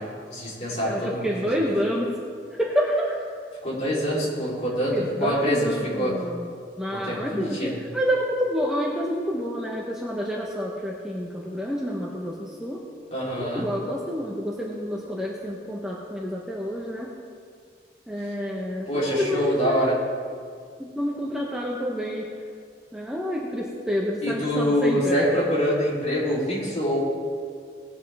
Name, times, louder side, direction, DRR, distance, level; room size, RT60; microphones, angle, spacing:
voice 1, 0.0-1.6 3.6-6.1 6.9-7.7 13.1-13.7 18.9-20.0 24.2-27.0, equal, 40° left, -7 dB, 3.7 m, -25 dB
voice 2, 0.7-2.2 2.5-3.1 4.9-6.5 6.8-12.8 13.4-17.1 18.1-19.9 20.8-22.3 22.9-25.5, equal, 5° right, -4 dB, 1.0 m, -28 dB
19.0 x 8.3 x 3.5 m, 2.1 s
head